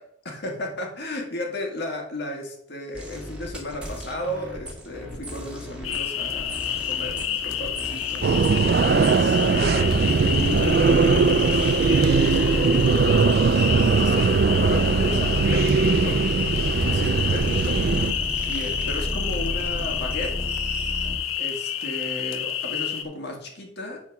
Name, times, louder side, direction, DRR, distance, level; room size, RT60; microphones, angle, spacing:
voice 1, 0.2-8.3 8.9-11.7 12.2-13.1 13.5-16.2 16.8-17.8 18.5-20.3 21.4-24.0, left 1 dB, 55° left, 2 dB, 1.8 m, -34 dB
sound 1, 2.9-21.2, equal, 5° right, 1.8 m, -32 dB
sound 2, 5.8-23.0, left 9 dB, 85° left, 0.7 m, -29 dB
sound 3, 8.2-18.1, right 5 dB, 50° right, 0.3 m, -20 dB
8.5 x 4.4 x 5.9 m, 0.74 s
head